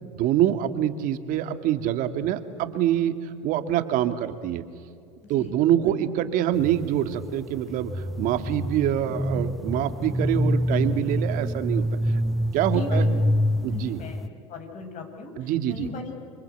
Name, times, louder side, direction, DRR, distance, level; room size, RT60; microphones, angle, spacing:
voice 1, 0.0-4.6 5.3-11.9 12.5-13.1 13.6-14.0 15.4-15.9, right 11 dB, 60° right, 9 dB, 2.1 m, -25 dB
sound 1, 6.5-14.3, equal, ahead, 0.6 m, -26 dB
voice 2, 12.7-13.3 13.7-14.2 14.5-15.3 15.7-16.2, left 4 dB, 50° left, 4 dB, 6.7 m, -37 dB
29.0 x 24.5 x 8.1 m, 2.4 s
hypercardioid pair, 90°, 16 cm